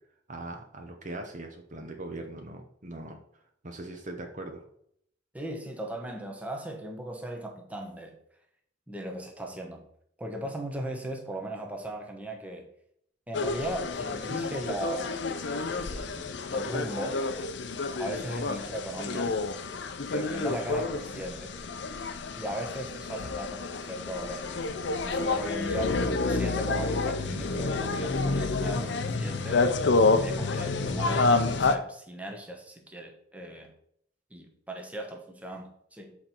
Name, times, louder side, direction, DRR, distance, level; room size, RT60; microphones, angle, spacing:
voice 1, 0.3-3.2 3.6-4.6, right 2 dB, 40° right, 4 dB, 0.8 m, -40 dB
voice 2, 5.3-8.2 8.9-9.8 10.2-12.7 13.3-15.2 15.4-17.3 17.9-19.4 20.1-21.6 22.4-24.7 25.0-29.7 30.1-33.7 34.3-36.2, right 1 dB, 5° right, 2 dB, 1.0 m, -37 dB
sound 1, 13.3-31.7, left 3 dB, 60° left, 0.6 m, -29 dB
7.4 x 4.2 x 4.5 m, 0.69 s
head